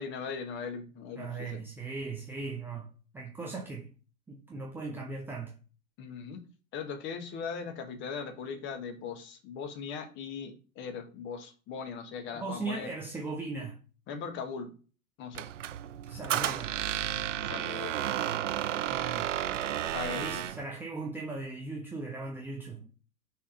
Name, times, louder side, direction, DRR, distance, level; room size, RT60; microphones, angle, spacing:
voice 1, 0.0-1.6 6.0-6.4 6.7-12.9 14.1-14.7 15.2-15.5 17.4-18.2 19.9-20.4, left 6 dB, 25° left, 1.4 m, -39 dB
voice 2, 1.2-3.9 4.3-5.6 12.3-13.8 16.1-16.8 18.9-19.4 20.1-22.9, right 3 dB, 5° right, 0.6 m, -38 dB
Squeak, 15.3-20.6, right 11 dB, 60° right, 0.6 m, -32 dB
5.6 x 4.2 x 5.1 m
figure-of-eight pair, 100°, 43 cm